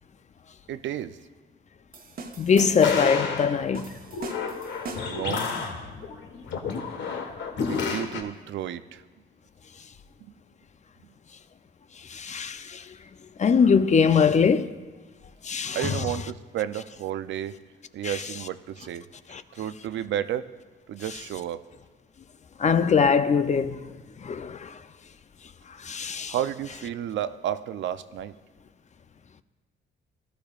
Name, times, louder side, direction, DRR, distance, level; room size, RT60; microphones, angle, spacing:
voice 1, 0.7-1.2 5.1-5.5 7.6-9.0 10.2-10.3 15.7-17.6 17.9-20.5 20.9-21.6 26.3-28.4, right 11 dB, 70° right, 0.5 m, -32 dB
sound 1, 1.9-3.1 3.7-5.3, right 4 dB, 45° right, 1.3 m, -40 dB
voice 2, 2.4-3.9 12.1-12.9 13.4-14.7 15.4-16.0 18.0-18.2 19.3-19.4 22.6-23.9 24.2-24.8 25.8-26.3, left 6 dB, 35° left, 0.6 m, -22 dB
sound 2, 2.8-8.2, left 5 dB, 65° left, 1.5 m, -31 dB
18.0 x 12.5 x 2.4 m
cardioid pair, 90°, 20 cm